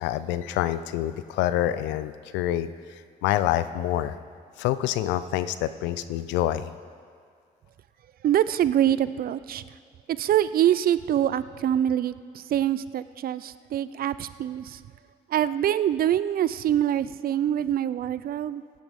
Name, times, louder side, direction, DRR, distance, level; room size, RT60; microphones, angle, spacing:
voice 1, 0.0-2.7 3.2-4.1 4.6-6.7, left 12 dB, 80° left, 13 dB, 0.5 m, -26 dB
voice 2, 8.2-9.6 10.1-14.8 15.3-18.6, right 11 dB, 55° right, 16 dB, 0.5 m, -25 dB
15.5 x 10.0 x 3.6 m, 2.2 s
supercardioid pair, 55°, 18 cm